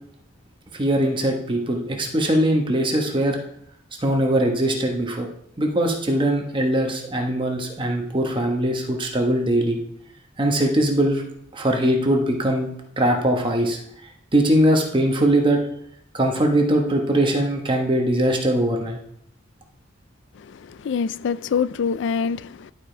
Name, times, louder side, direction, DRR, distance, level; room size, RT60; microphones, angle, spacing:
voice 1, 0.8-3.4 4.0-5.3 5.6-9.8 10.4-11.2 11.5-12.7 13.0-13.8 14.3-15.6 16.1-19.0, right 1 dB, 25° right, 1.1 m, -21 dB
voice 2, 20.4-22.7, left 6 dB, 60° left, 0.3 m, -25 dB
11.0 x 5.0 x 4.5 m
head